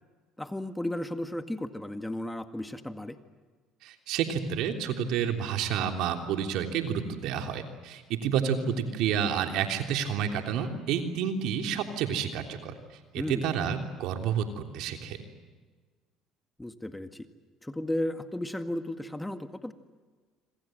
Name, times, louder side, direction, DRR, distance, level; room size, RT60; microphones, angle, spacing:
voice 1, 0.4-3.2 13.2-13.5 16.6-17.3 17.6-19.7, left 1 dB, 10° left, 8 dB, 1.9 m, -34 dB
voice 2, 3.8-12.7 13.1-15.2, right 8 dB, 70° right, 4 dB, 3.3 m, -30 dB
27.0 x 25.5 x 7.9 m, 1.4 s
hypercardioid pair, 70°, 0 cm